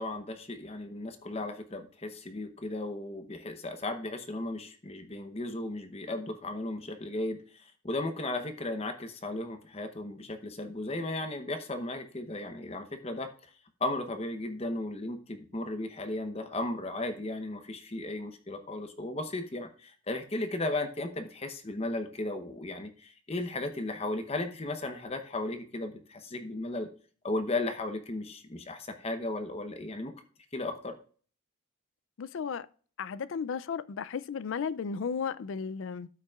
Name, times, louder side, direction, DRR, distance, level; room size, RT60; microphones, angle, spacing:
voice 1, 0.0-13.3 13.8-26.9 27.2-30.1 30.5-30.9, left 2 dB, 30° left, 0.8 m, -35 dB
voice 2, 32.2-32.7 33.0-36.1, left 6 dB, 60° left, 0.4 m, -34 dB
13.0 x 5.8 x 2.4 m
head